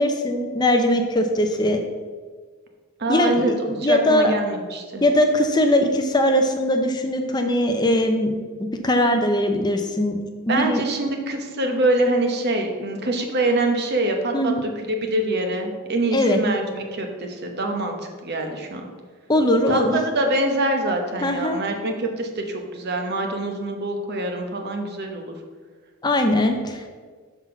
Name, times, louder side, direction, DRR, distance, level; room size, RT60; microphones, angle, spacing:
voice 1, 0.0-1.8 3.1-4.3 5.0-10.8 14.3-14.6 16.1-16.4 19.3-20.0 21.2-21.6 26.0-26.9, left 1 dB, 20° left, 5 dB, 0.5 m, -21 dB
voice 2, 3.0-5.0 10.5-14.7 15.0-18.0 18.2-18.9 19.7-25.3, right 2 dB, 50° right, 3 dB, 1.0 m, -24 dB
6.0 x 5.8 x 5.6 m, 1.5 s
head